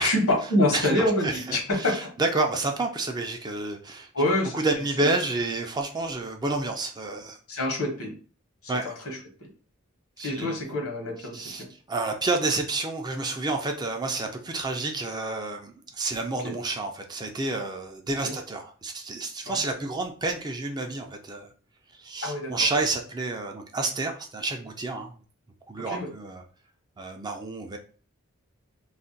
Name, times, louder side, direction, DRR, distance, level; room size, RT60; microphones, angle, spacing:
voice 1, 0.0-2.1 4.1-4.6 5.0-5.1 7.5-8.1 8.6-9.5 10.2-11.7 16.4-16.5 18.2-18.3 19.5-19.6 22.2-22.5 25.9-26.1, left 1 dB, 75° left, 1 dB, 1.0 m, -26 dB
voice 2, 1.2-4.1 4.5-7.4 8.7-8.9 10.2-10.6 11.3-21.5 22.0-25.1 25.7-26.4 27.0-27.8, right 3 dB, 20° right, 3 dB, 0.4 m, -29 dB
2.4 x 2.1 x 3.8 m, 0.40 s
head